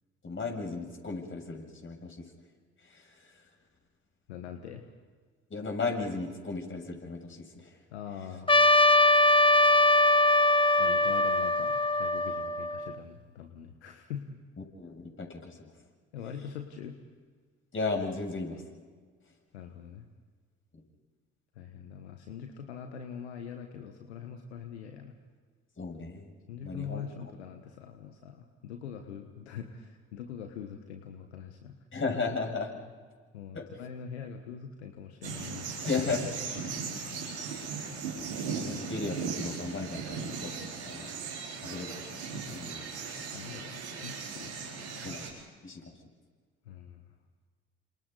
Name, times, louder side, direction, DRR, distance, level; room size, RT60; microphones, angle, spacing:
voice 1, 0.2-2.2 2.9-3.0 5.5-7.7 14.8-15.7 17.7-18.6 25.8-26.3 26.6-27.0 31.9-32.7 33.5-33.7 35.8-36.2 38.5-41.2 41.6-42.1 42.5-42.8 45.0-45.2 45.6-45.8, left 4 dB, 40° left, 1 dB, 7.7 m, -35 dB
voice 2, 4.3-4.8 7.9-8.5 10.8-14.2 16.1-17.0 19.5-20.0 21.6-25.1 26.5-31.7 33.3-36.0 36.5-37.3 43.3-45.1 46.7-47.0, left 8 dB, 85° left, 5 dB, 1.4 m, -43 dB
Trumpet, 8.5-12.9, left 2 dB, 15° left, 1.3 m, -22 dB
sound 1, 35.2-45.3, right 5 dB, 90° right, 4.3 m, -38 dB
30.0 x 27.0 x 4.1 m, 1.5 s
hypercardioid pair, 50°, 32 cm